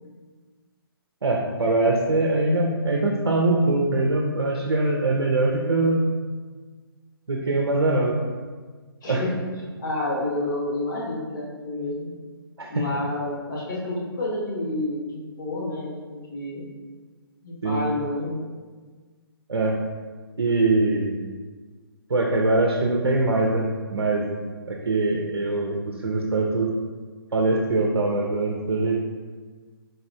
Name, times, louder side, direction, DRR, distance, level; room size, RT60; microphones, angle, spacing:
voice 1, 1.2-6.1 7.3-8.1 9.1-9.2 12.6-12.8 17.6-17.8 19.5-19.8 20.4-21.2 22.1-24.3 24.7-26.7 27.3-29.0, right 2 dB, 75° right, -1 dB, 0.5 m, -22 dB
voice 2, 9.0-9.4 9.8-12.1 12.7-16.6 17.4-18.4, left 2 dB, 50° left, -5 dB, 1.2 m, -29 dB
4.0 x 3.1 x 2.6 m, 1.5 s
figure-of-eight pair, 135°, 13 cm